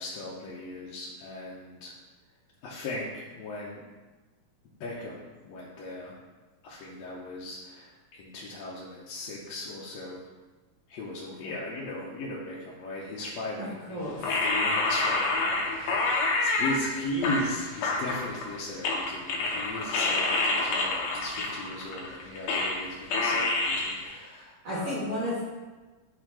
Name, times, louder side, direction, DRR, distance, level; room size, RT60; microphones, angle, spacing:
voice 1, 0.0-1.9 2.6-3.8 4.8-6.1 6.6-10.3 10.9-25.0, left 1 dB, 70° left, -6 dB, 1.9 m, -37 dB
voice 2, 13.6-14.2 24.6-25.4, left 1 dB, 55° right, -11 dB, 3.0 m, -32 dB
sound 1, 14.2-16.8 17.2-18.6 18.8-22.9 23.1-24.0, left 3 dB, 90° left, 2.5 m, -27 dB
9.9 x 4.5 x 3.0 m, 1.2 s
omnidirectional pair, 3.6 m